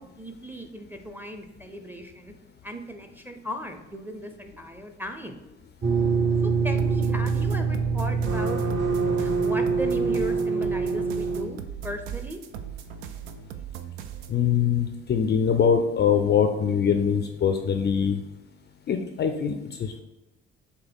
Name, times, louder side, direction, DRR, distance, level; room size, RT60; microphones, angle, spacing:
voice 1, 0.0-2.3 2.6-5.4 6.4-8.6 9.1-12.4, equal, 5° right, 5 dB, 0.6 m, -37 dB
sound 1, 5.8-11.4, right 4 dB, 35° right, 1.0 m, -24 dB
sound 2, 6.8-14.4, right 8 dB, 70° right, 0.5 m, -38 dB
voice 2, 14.3-18.2 18.9-20.0, left 7 dB, 35° left, 7 dB, 0.5 m, -23 dB
6.5 x 2.2 x 3.5 m, 0.98 s
hypercardioid pair, 55°, 31 cm